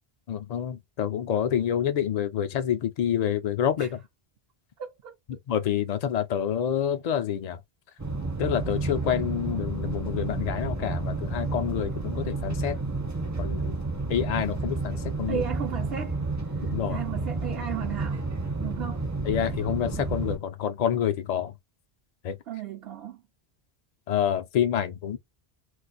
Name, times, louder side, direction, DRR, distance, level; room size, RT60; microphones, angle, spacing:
voice 1, 0.3-4.0 5.5-7.6 8.4-12.8 13.4-13.8 14.1-15.4 16.6-17.0 19.2-21.5 22.2-22.4 24.1-25.2, left 9 dB, 55° left, 0.4 m, -27 dB
voice 2, 4.8-5.1 15.3-16.2 16.6-18.2 18.6-19.0 22.5-23.2, right 8 dB, 70° right, 0.8 m, -35 dB
sound 1, 8.0-20.4, right 3 dB, 20° right, 0.5 m, -31 dB
2.4 x 2.4 x 3.9 m
omnidirectional pair, 1.1 m